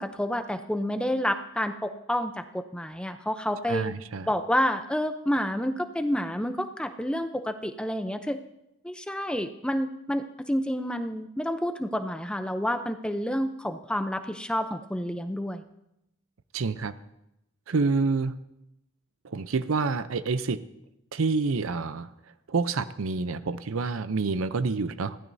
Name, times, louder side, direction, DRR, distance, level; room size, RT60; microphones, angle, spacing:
voice 1, 0.0-3.9 4.3-8.4 8.8-15.6, equal, 5° left, 8 dB, 0.6 m, -29 dB
voice 2, 3.7-4.3 16.5-16.9 17.7-18.3 19.2-20.6 21.1-22.1 22.5-25.2, right 4 dB, 70° right, 14 dB, 0.6 m, -27 dB
21.0 x 15.5 x 2.7 m, 0.85 s
head